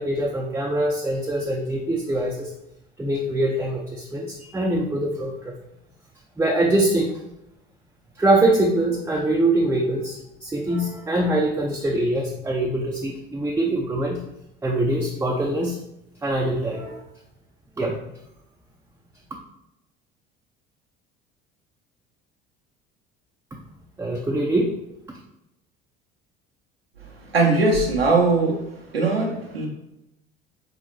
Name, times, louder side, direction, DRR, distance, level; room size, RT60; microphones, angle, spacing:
voice 1, 0.0-2.5 3.0-5.5 6.4-7.2 8.2-14.2 14.6-15.8 16.2-17.0 17.8-18.0 24.0-24.7 25.1-25.2, right 1 dB, 10° right, -1 dB, 0.5 m, -23 dB
voice 2, 27.1-28.6 28.9-29.7, right 3 dB, 85° right, -2 dB, 1.0 m, -20 dB
3.9 x 3.9 x 3.1 m, 0.86 s
figure-of-eight pair, 60°, 29 cm